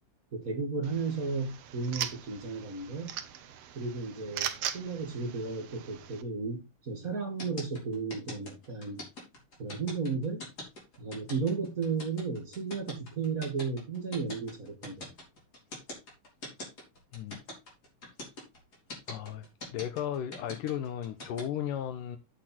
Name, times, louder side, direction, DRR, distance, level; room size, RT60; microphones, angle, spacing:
voice 1, 0.3-3.1 3.8-9.0 9.6-10.5 11.0-15.1, right 4 dB, 30° right, 1.8 m, -34 dB
sound 1, 0.8-6.2, right 10 dB, 65° right, 1.7 m, -40 dB
sound 2, 7.4-21.4, left 1 dB, 30° left, 4.6 m, -42 dB
voice 2, 19.1-19.4 19.7-22.2, left 10 dB, 85° left, 2.5 m, -35 dB
8.7 x 8.0 x 4.3 m
omnidirectional pair, 3.7 m